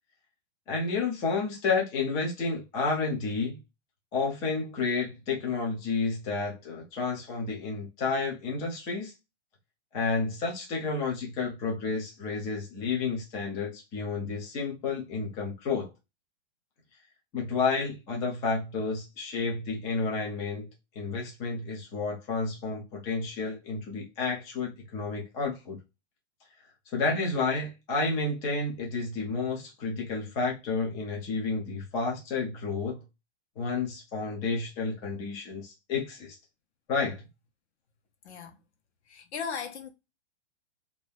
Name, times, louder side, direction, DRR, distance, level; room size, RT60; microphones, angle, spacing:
voice 1, 0.7-3.6 4.1-9.1 9.9-15.9 17.3-20.7 21.0-25.8 26.9-33.0 33.6-36.4 36.9-37.2, left 4 dB, 10° left, 0.4 m, -31 dB
voice 2, 38.2-38.6 39.1-39.9, left 6 dB, 75° left, 1.1 m, -37 dB
2.7 x 2.7 x 3.2 m
hypercardioid pair, 160°, 35 cm